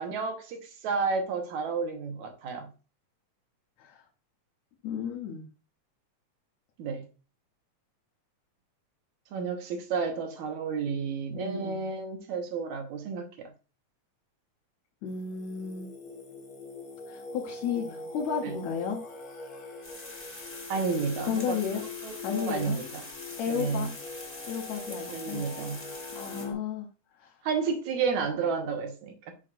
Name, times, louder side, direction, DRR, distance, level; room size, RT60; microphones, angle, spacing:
voice 1, 0.0-2.7 6.8-7.0 9.3-13.5 18.4-18.5 20.7-21.6 22.0-23.0 23.5-23.9 25.1-25.9 26.4-26.5 27.4-29.3, right 5 dB, 75° right, 2.5 m, -31 dB
voice 2, 4.8-5.5 11.3-11.8 15.0-15.9 17.1-19.0 21.2-21.8 22.2-22.8 23.4-23.9 24.5-25.5 26.1-26.9 27.2-27.3, left 7 dB, 75° left, 2.1 m, -33 dB
Singing, 15.1-26.5, left 3 dB, 45° left, 1.4 m, -43 dB
sound 1, 19.8-26.5, left 2 dB, 25° left, 0.8 m, -44 dB
6.4 x 5.9 x 2.5 m
omnidirectional pair, 3.4 m